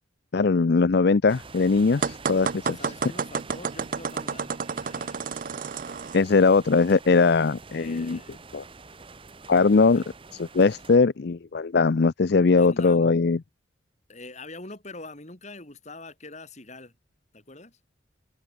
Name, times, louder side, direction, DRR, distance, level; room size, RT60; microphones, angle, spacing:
voice 1, 0.3-2.8 6.1-8.2 8.5-8.6 9.5-10.0 10.4-13.4, left 4 dB, 50° left, 0.5 m, -20 dB
sound 1, 1.3-11.0, right 4 dB, 25° right, 0.9 m, -46 dB
sound 2, 2.0-6.2, right 5 dB, 40° right, 0.5 m, -30 dB
voice 2, 2.8-5.2 7.7-8.4 9.9-10.0 12.6-13.1 14.1-16.9 17.3-17.8, left 2 dB, 35° left, 2.8 m, -44 dB
head